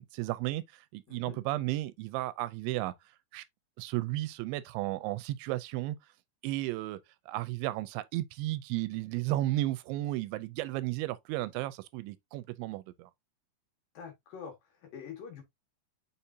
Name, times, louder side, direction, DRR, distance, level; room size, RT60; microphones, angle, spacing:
voice 1, 0.0-2.9 3.3-3.4 3.8-6.0 6.4-7.0 7.3-13.1, right 16 dB, 85° right, 2.8 m, -34 dB
voice 2, 1.1-1.4 13.9-15.4, left 7 dB, 60° left, 2.6 m, -45 dB
6.9 x 5.6 x 2.7 m
omnidirectional pair, 5.4 m